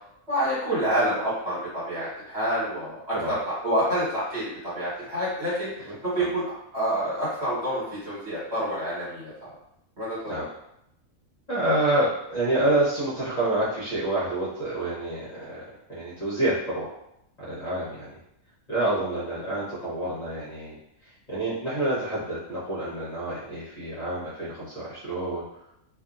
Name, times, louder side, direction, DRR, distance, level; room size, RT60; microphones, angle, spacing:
voice 1, 0.3-6.4 6.7-9.5 10.0-10.4, equal, 50° right, -9 dB, 1.6 m, -28 dB
voice 2, 5.9-6.3 10.3-10.5 11.5-15.6 15.9-16.9 17.5-18.1 18.7-20.8 21.3-25.4, right 1 dB, 35° left, -11 dB, 1.0 m, -28 dB
2.7 x 2.6 x 2.4 m, 0.79 s
omnidirectional pair, 1.4 m